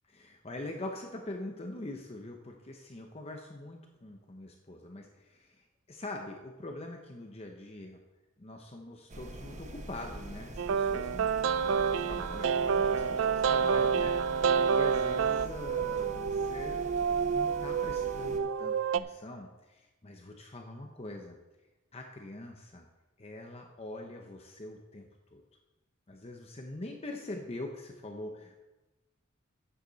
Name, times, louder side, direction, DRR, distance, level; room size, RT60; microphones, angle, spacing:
voice 1, 0.1-8.0 8.4-11.3 11.6-16.8 17.3-21.4 21.9-22.8 23.2-25.4 26.1-28.6, left 2 dB, 30° left, 3 dB, 0.8 m, -43 dB
sound 1, 9.1-18.4, right 1 dB, 35° right, 0.9 m, -44 dB
sound 2, 10.6-19.0, right 6 dB, 65° right, 0.4 m, -28 dB
12.5 x 8.5 x 4.0 m, 1.1 s
head